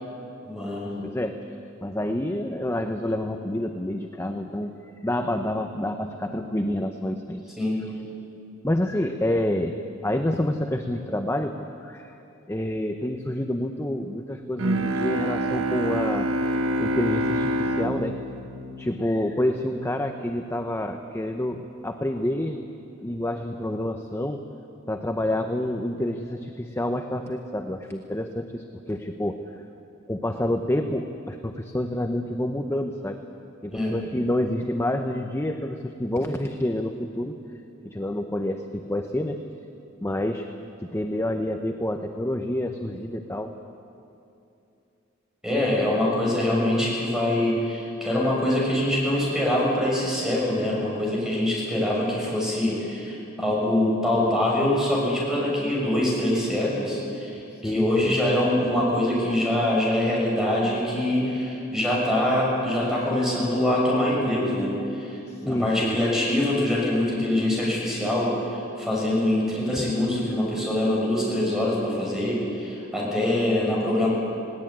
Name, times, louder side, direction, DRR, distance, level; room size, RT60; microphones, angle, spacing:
voice 1, 0.5-0.9 7.6-7.8 33.7-33.9 45.4-74.1, left 1 dB, 5° right, -4 dB, 6.7 m, -24 dB
voice 2, 1.0-1.3 1.8-4.7 5.0-7.4 8.6-9.7 10.0-12.1 12.5-18.2 18.8-22.6 23.0-24.4 24.9-29.4 30.1-33.2 33.6-37.3 37.8-39.4 40.0-40.5 40.8-43.5 57.5-58.2 65.3-66.0, left 1 dB, 15° left, 5 dB, 0.8 m, -28 dB
Bowed string instrument, 14.6-19.7, right 1 dB, 85° right, 1.1 m, -27 dB
20.5 x 18.5 x 8.9 m, 2.7 s
head